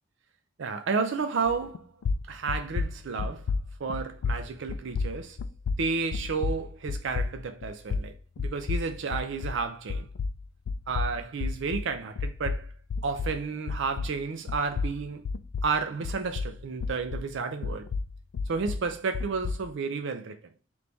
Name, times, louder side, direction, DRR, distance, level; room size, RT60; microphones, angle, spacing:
voice 1, 0.6-1.9 2.3-3.5 3.8-5.4 5.8-10.1 10.9-12.7 13.0-15.2 15.6-17.9 18.5-20.4, right 4 dB, 60° right, 0.4 m, -31 dB
sound 1, 1.4-1.8 2.0-9.6 9.9-14.2 14.5-17.3 17.6-19.7, left 4 dB, 90° left, 0.4 m, -32 dB
3.4 x 3.1 x 3.8 m
head